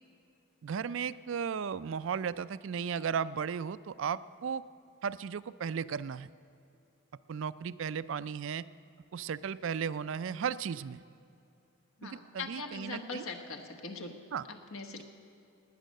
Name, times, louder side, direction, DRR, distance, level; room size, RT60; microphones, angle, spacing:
voice 1, 0.6-4.6 5.0-6.3 7.3-8.6 9.1-11.0 12.0-13.2 14.3-14.4, right 7 dB, 65° right, 16 dB, 0.4 m, -35 dB
voice 2, 12.0-14.1 14.5-15.0, left 3 dB, 80° left, 4 dB, 1.4 m, -41 dB
19.5 x 9.0 x 6.5 m, 2.6 s
head